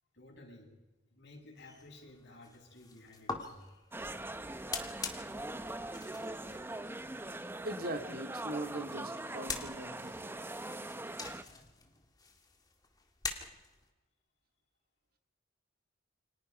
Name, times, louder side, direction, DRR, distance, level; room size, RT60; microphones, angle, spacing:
voice 1, 0.1-0.7 1.1-3.9, left 2 dB, 60° left, -1 dB, 7.8 m, -54 dB
sound 1, 1.6-13.9, left 4 dB, 20° left, 2.2 m, -46 dB
sound 2, 3.9-11.4, right 2 dB, 10° right, 0.7 m, -42 dB
voice 2, 7.6-10.4, right 1 dB, 50° right, 6 dB, 2.2 m, -41 dB
28.5 x 25.0 x 5.5 m, 1.1 s
head